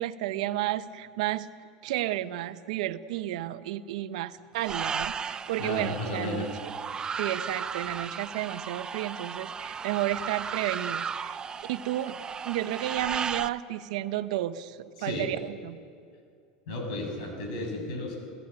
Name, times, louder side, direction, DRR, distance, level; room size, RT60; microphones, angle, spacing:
voice 1, 0.0-1.5 1.8-6.7 7.2-12.2 12.4-15.8, right 14 dB, 80° right, 12 dB, 0.9 m, -32 dB
sound 1, 4.6-13.5, right 6 dB, 20° right, 0.6 m, -35 dB
voice 2, 5.6-6.5 15.0-15.3 16.7-18.2, left 2 dB, 75° left, 3 dB, 6.5 m, -33 dB
28.0 x 15.5 x 9.0 m, 2.3 s
supercardioid pair, 125°, 4 cm